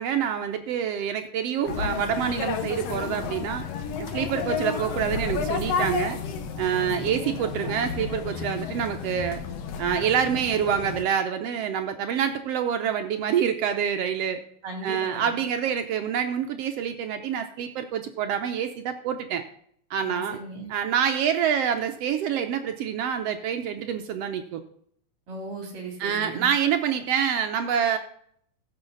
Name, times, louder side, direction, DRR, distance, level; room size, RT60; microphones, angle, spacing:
voice 1, 0.0-3.6 4.0-6.2 6.6-9.4 9.8-14.4 14.8-19.4 19.9-20.4 20.7-24.6 26.0-28.0, right 8 dB, 75° right, 7 dB, 1.5 m, -26 dB
sound 1, 1.7-11.0, left 6 dB, 65° left, 1.8 m, -31 dB
voice 2, 6.7-7.4 14.6-15.3 20.0-20.7 25.3-26.5, right 2 dB, 45° right, 1 dB, 3.8 m, -38 dB
15.0 x 6.4 x 3.9 m, 0.64 s
omnidirectional pair, 3.6 m